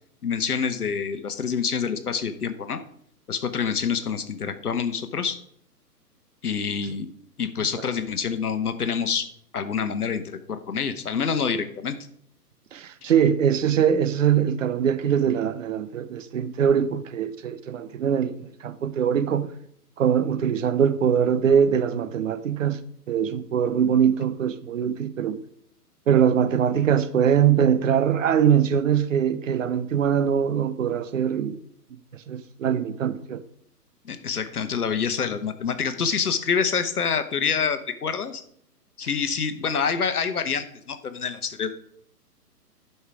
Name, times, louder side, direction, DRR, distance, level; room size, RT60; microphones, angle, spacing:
voice 1, 0.2-2.8 3.3-5.4 6.4-7.1 7.4-9.3 9.5-10.2 10.5-12.0 34.0-38.4 39.0-41.7, left 6 dB, 65° left, 1.0 m, -26 dB
voice 2, 12.7-19.5 20.0-22.8 23.1-25.4 26.1-31.6 32.3-33.4, right 8 dB, 55° right, 0.8 m, -22 dB
11.0 x 5.7 x 4.7 m
figure-of-eight pair, 125°, 48 cm